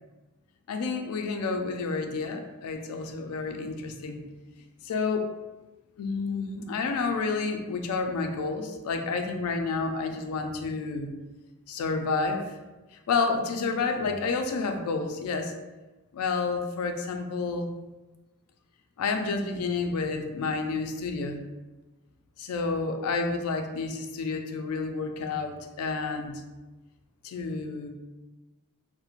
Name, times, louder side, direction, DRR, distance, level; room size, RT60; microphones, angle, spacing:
voice 1, 0.7-4.3 4.8-5.2 6.0-11.1 11.7-12.6 13.1-15.5 16.1-17.7 19.0-21.5 22.4-26.4 27.2-27.9, left 4 dB, 75° left, 5 dB, 0.3 m, -30 dB
2.4 x 2.0 x 2.9 m, 1.1 s
head